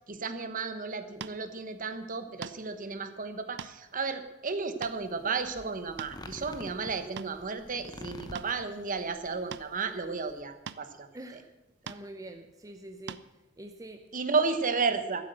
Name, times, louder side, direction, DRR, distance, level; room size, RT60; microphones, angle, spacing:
voice 1, 0.1-11.4 14.1-15.2, right 4 dB, 40° right, 9 dB, 1.1 m, -33 dB
sound 1, 1.2-1.4 2.4-2.7 3.3-3.8 4.3-4.4 4.8-5.0 5.7-6.3 6.9-7.3 8.3-8.5 9.5-9.7 10.7-10.9 11.9-12.1 13.1-13.2, right 7 dB, 60° right, 0.5 m, -41 dB
sound 2, 4.8-10.4, left 1 dB, 20° left, 1.0 m, -47 dB
voice 2, 11.1-11.5 11.8-13.2 13.6-14.0, right 1 dB, 15° right, 6 dB, 0.8 m, -45 dB
14.5 x 8.4 x 7.8 m, 0.98 s
head